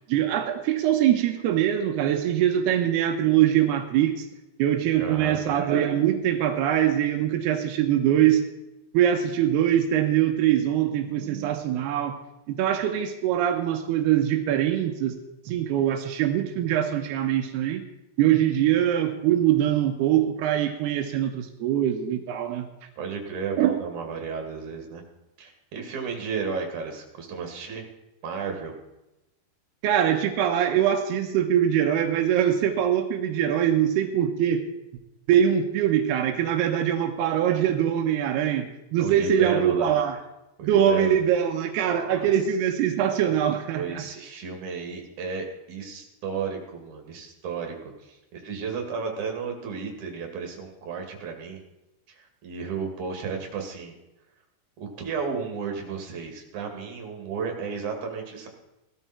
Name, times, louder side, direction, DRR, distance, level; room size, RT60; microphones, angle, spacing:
voice 1, 0.1-4.3 4.6-8.4 8.9-12.2 12.5-15.1 15.5-17.8 18.2-22.7 23.6-23.7 29.8-34.7 35.3-40.2 40.6-44.0, right 10 dB, 85° right, 5 dB, 3.0 m, -23 dB
voice 2, 5.0-5.4 23.0-25.0 25.4-27.8 28.2-28.8 39.0-39.9 40.6-41.2 41.8-42.3 43.7-51.6 52.1-53.9 54.8-58.5, right 5 dB, 55° right, 2 dB, 3.6 m, -33 dB
17.5 x 12.5 x 4.4 m, 0.94 s
omnidirectional pair, 4.6 m